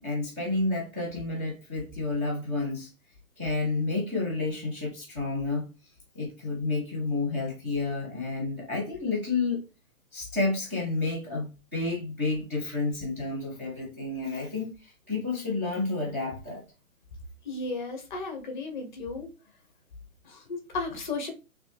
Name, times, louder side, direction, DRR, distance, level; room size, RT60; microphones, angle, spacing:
voice 1, 0.0-2.9 3.4-5.6 6.1-9.6 10.1-16.6, left 3 dB, 10° right, 0.5 m, -30 dB
voice 2, 17.4-19.3 20.2-21.3, left 3 dB, 35° left, 0.9 m, -34 dB
3.6 x 3.0 x 3.2 m
hypercardioid pair, 160°, 42 cm